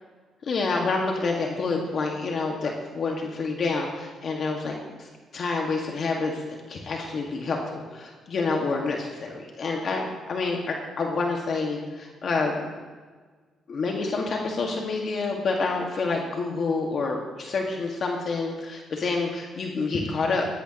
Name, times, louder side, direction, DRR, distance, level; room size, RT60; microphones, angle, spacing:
voice 1, 0.4-12.7 13.7-20.5, left 3 dB, 55° left, 0 dB, 1.8 m, -28 dB
17.0 x 14.0 x 3.0 m, 1.4 s
cardioid pair, 90°, 0 cm